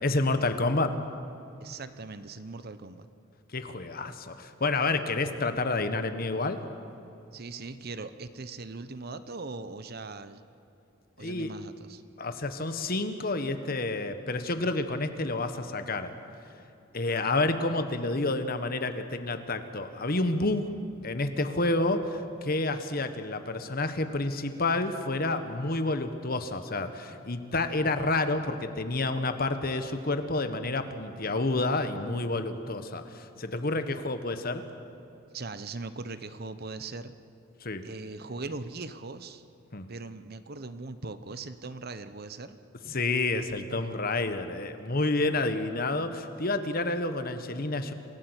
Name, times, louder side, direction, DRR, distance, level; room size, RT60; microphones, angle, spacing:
voice 1, 0.0-1.0 3.5-6.6 11.2-11.5 12.2-16.1 16.9-20.7 21.0-34.6 37.6-37.8 39.7-39.9 42.8-47.9, left 2 dB, 45° left, 9 dB, 1.4 m, -29 dB
voice 2, 1.6-3.1 7.3-10.4 11.2-12.0 35.3-37.1 37.8-39.4 39.9-42.6, right 3 dB, 50° right, 12 dB, 0.9 m, -40 dB
27.5 x 16.0 x 8.2 m, 2.8 s
head